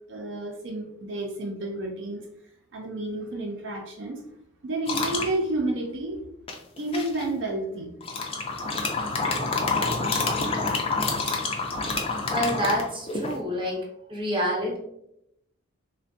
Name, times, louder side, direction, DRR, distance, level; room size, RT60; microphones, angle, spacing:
voice 1, 0.1-2.3 2.7-4.2 4.6-6.2 6.8-7.9, right 2 dB, 60° right, 0 dB, 0.4 m, -30 dB
sound 1, 4.9-5.3 6.5-7.2 8.0-13.4, left 3 dB, 25° left, 0.3 m, -27 dB
voice 2, 12.3-13.8 14.1-14.8, equal, 25° right, -1 dB, 0.7 m, -27 dB
3.4 x 2.1 x 2.6 m, 0.80 s
head